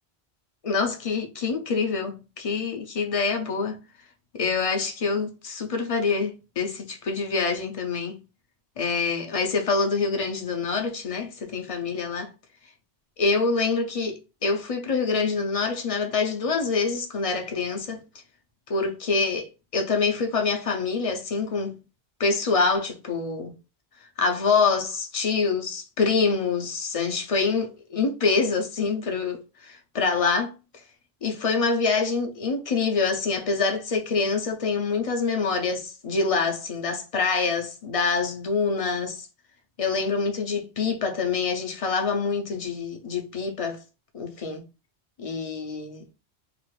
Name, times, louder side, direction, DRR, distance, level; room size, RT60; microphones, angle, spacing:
voice 1, 0.6-3.8 4.3-8.2 8.8-12.3 13.2-18.0 18.7-21.8 22.2-23.5 24.2-30.5 31.2-39.3 39.8-43.8 44.1-44.6 45.2-46.0, left 4 dB, 50° left, 0.4 m, -26 dB
2.9 x 2.4 x 3.0 m
omnidirectional pair, 1.1 m